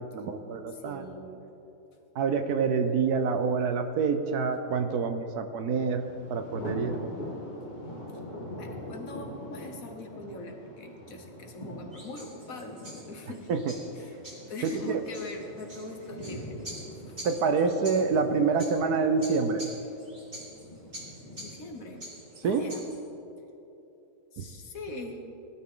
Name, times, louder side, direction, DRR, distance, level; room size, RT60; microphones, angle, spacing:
voice 1, 0.1-1.1 2.2-6.0 6.3-7.0 13.5-13.7 14.6-15.0 17.2-19.6 22.4-22.7 24.4-24.5, right 5 dB, 70° right, 8 dB, 1.3 m, -27 dB
voice 2, 0.7-1.5 8.6-13.5 13.9-14.2 14.5-16.6 17.0-17.2 21.4-22.1 22.4-22.9 24.3-25.2, left 2 dB, 55° left, 4 dB, 1.6 m, -42 dB
Thunder, 5.7-22.7, left 1 dB, 25° left, 1.8 m, -44 dB
sound 1, 11.9-23.0, right 1 dB, 30° right, 3.1 m, -47 dB
19.0 x 12.5 x 3.8 m, 3.0 s
omnidirectional pair, 1.8 m